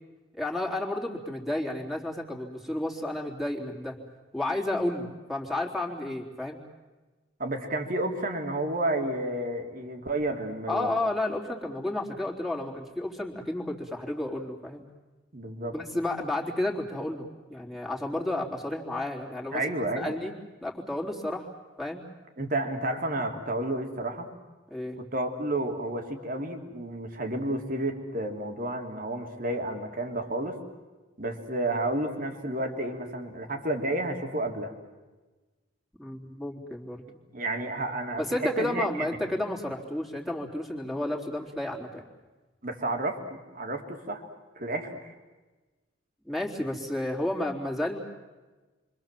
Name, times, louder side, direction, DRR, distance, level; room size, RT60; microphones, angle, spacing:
voice 1, 0.3-4.0 4.3-6.6 10.7-14.8 15.7-19.6 20.0-20.3 20.6-21.5 21.8-22.0 24.7-25.0 36.0-37.0 38.2-42.0 46.2-48.0, left 1 dB, ahead, -1 dB, 3.7 m, -31 dB
voice 2, 7.4-10.9 15.3-15.7 19.5-20.1 22.4-24.3 25.0-30.6 31.2-34.7 37.3-38.2 38.6-39.1 42.6-44.2 44.5-45.1, right 1 dB, 45° right, 4 dB, 3.2 m, -31 dB
28.5 x 25.0 x 7.7 m, 1.2 s
head